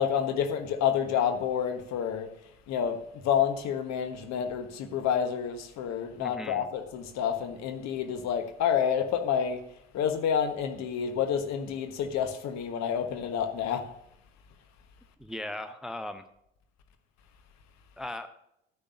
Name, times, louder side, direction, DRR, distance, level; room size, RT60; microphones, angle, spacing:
voice 1, 0.0-2.3 2.7-9.6 9.9-13.9, left 8 dB, 50° left, 1.3 m, -29 dB
voice 2, 6.2-6.7 15.2-16.2 18.0-18.3, left 1 dB, ahead, 0.7 m, -38 dB
12.0 x 10.0 x 2.6 m
figure-of-eight pair, 55°, 34 cm